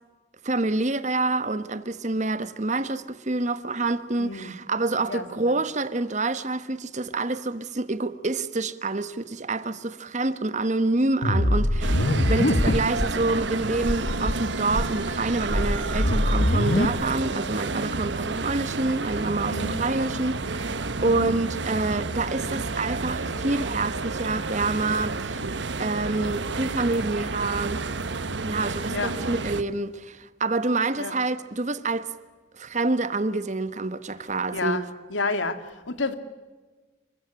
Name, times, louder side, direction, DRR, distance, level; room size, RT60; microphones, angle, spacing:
voice 1, 0.4-25.5 25.8-27.8 28.4-32.1 32.6-34.8, right 2 dB, 40° right, 1.2 m, -27 dB
voice 2, 4.2-4.5 5.1-5.5 19.5-19.8 21.0-21.3 28.9-29.1 31.0-31.1 34.5-34.8 35.1-36.1, left 3 dB, 90° left, 2.3 m, -30 dB
sound 1, 11.2-13.1 13.4-13.5 13.8-14.3 14.7-16.8, left 1 dB, 55° left, 1.6 m, -23 dB
sound 2, 11.8-29.6, right 3 dB, 70° right, 1.2 m, -30 dB
27.5 x 15.5 x 10.0 m
head